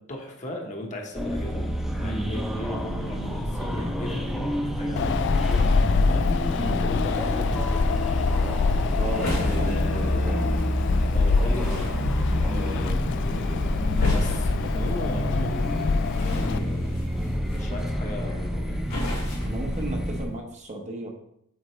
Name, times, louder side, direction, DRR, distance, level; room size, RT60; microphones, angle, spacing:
voice 1, 0.1-1.6 1.9-8.0 9.4-10.6 11.1-11.9 12.5-15.9 16.2-17.0 17.4-18.8, left 1 dB, 35° left, 0 dB, 1.1 m, -37 dB
sound 1, 1.1-20.3, equal, ahead, 0.7 m, -28 dB
voice 2, 2.0-2.3 6.6-6.8 9.0-10.5 16.4-16.7 19.4-21.1, right 2 dB, 35° right, 2 dB, 0.9 m, -35 dB
Wind, 5.0-16.6, left 4 dB, 55° left, 0.3 m, -25 dB
sound 2, 9.0-20.4, left 1 dB, 75° left, 2.6 m, -37 dB
7.4 x 4.3 x 3.1 m, 0.76 s
head